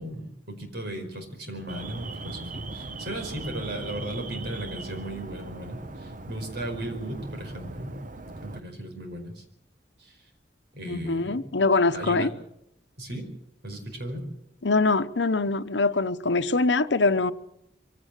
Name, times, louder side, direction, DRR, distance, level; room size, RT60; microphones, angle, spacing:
voice 1, 0.0-7.9 8.4-9.4 10.0-10.2 10.7-11.4 11.9-12.3 13.0-13.3 13.6-14.2, right 1 dB, 65° right, 5.0 m, -36 dB
Alarm, 1.7-8.6, right 2 dB, 50° right, 1.0 m, -39 dB
voice 2, 10.8-12.3 14.6-17.3, left 3 dB, 80° left, 0.9 m, -23 dB
23.5 x 16.5 x 8.2 m
head